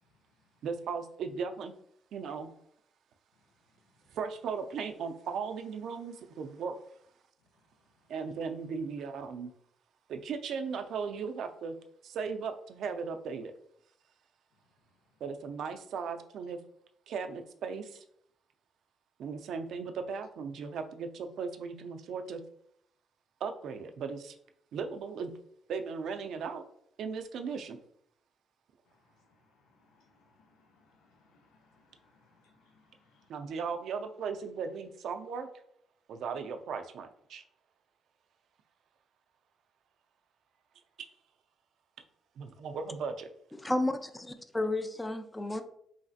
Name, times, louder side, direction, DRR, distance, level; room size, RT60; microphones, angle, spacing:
voice 1, 0.6-1.7 2.1-2.5 4.1-6.7 8.1-9.5 10.1-11.8 12.0-13.5 15.2-16.6 17.1-18.0 19.2-22.4 23.4-24.4 24.7-25.3 25.7-26.6 27.0-27.8 33.3-35.5 36.1-37.4 41.0-41.1 42.4-43.3, right 5 dB, 75° right, 0.3 m, -37 dB
voice 2, 29.3-33.3, left 3 dB, 90° left, 0.5 m, -67 dB
voice 3, 43.6-45.6, left 2 dB, 10° left, 0.3 m, -32 dB
3.1 x 2.6 x 2.4 m
cardioid pair, 90°, 0 cm